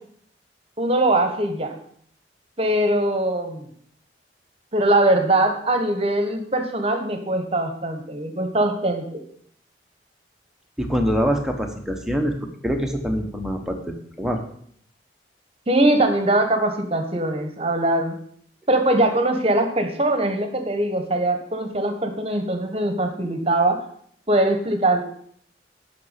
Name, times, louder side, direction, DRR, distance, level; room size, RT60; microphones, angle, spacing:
voice 1, 0.8-1.7 2.6-3.7 4.7-9.2 15.7-18.2 18.7-23.8 24.3-25.0, right 1 dB, 30° right, 6 dB, 1.2 m, -21 dB
voice 2, 10.8-12.3 12.6-14.4, equal, 5° right, 2 dB, 1.1 m, -24 dB
9.4 x 6.0 x 6.7 m, 0.63 s
head